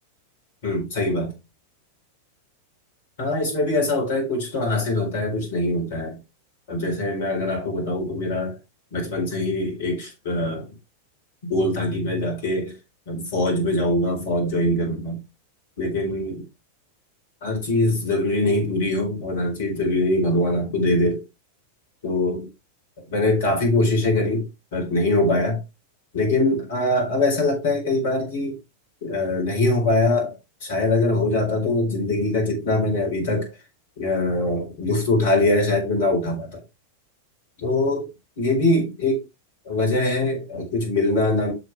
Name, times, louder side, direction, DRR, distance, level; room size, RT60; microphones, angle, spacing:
voice 1, 0.6-1.3 3.2-6.2 6.7-8.6 8.9-10.7 11.4-12.7 13.1-15.2 15.8-16.4 17.4-21.2 22.0-22.5 23.1-25.6 26.1-28.6 29.0-30.4 30.6-33.5 34.0-36.6 37.6-38.1 38.4-39.2 39.7-41.5, left 2 dB, 55° left, 4.3 m, -23 dB
7.9 x 6.6 x 3.3 m
figure-of-eight pair, 90°, 0 cm